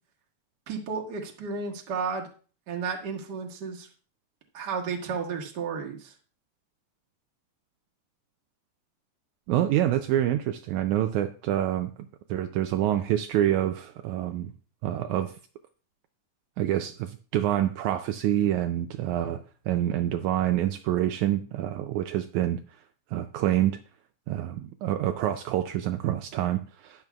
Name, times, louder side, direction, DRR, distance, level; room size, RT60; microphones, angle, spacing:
voice 1, 0.7-2.3 2.7-3.9 4.5-6.1, right 5 dB, 40° right, 1.7 m, -32 dB
voice 2, 9.5-11.9 12.3-14.5 14.8-15.3 16.6-22.6 23.1-23.8 24.3-27.0, right 12 dB, 80° right, 1.9 m, -27 dB
12.0 x 10.5 x 2.3 m
omnidirectional pair, 3.6 m